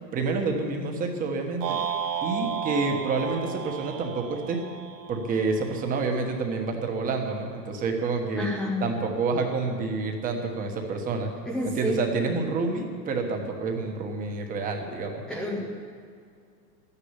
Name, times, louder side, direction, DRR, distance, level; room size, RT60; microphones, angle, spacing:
voice 1, 0.1-1.8 2.2-4.6 5.1-8.5 8.8-11.3 11.6-15.2, right 4 dB, 15° right, 3 dB, 1.3 m, -28 dB
sound 1, 1.6-5.9, right 7 dB, 80° right, 2.2 m, -33 dB
voice 2, 8.4-8.8 11.4-12.0 15.3-15.7, left 1 dB, ahead, -5 dB, 0.5 m, -29 dB
12.5 x 10.0 x 9.7 m, 2.2 s
supercardioid pair, 165°, 48 cm